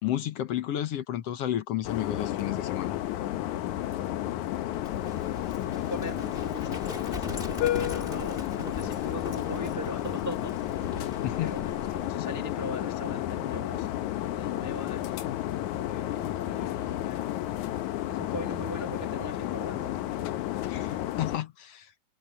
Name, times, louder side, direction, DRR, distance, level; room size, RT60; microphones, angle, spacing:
voice 1, 0.0-3.0 11.2-11.5 20.7-21.9, left 12 dB, 65° left, 1.9 m, -32 dB
sound 1, 1.8-21.4, left 13 dB, 80° left, 2.4 m, -32 dB
Livestock farm animals working animals, 4.7-12.1, left 3 dB, 20° left, 1.6 m, -41 dB
voice 2, 4.7-5.2 5.6-10.8 11.4-15.3 15.8-17.3 18.1-19.9 20.4-20.9, equal, 20° right, 0.4 m, -41 dB
omnidirectional pair, 3.4 m